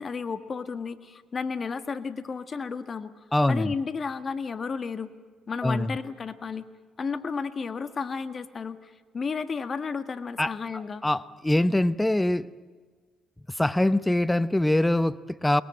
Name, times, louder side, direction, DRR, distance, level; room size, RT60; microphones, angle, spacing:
voice 1, 0.0-3.1 3.5-5.1 5.5-6.7 7.0-11.0, left 5 dB, 45° left, 11 dB, 1.7 m, -32 dB
voice 2, 3.3-3.7 5.6-6.0 10.4-10.5 11.0-12.5 13.6-15.6, left 1 dB, 10° left, 17 dB, 0.8 m, -23 dB
22.0 x 21.5 x 9.0 m, 1.5 s
supercardioid pair, 55°, 0 cm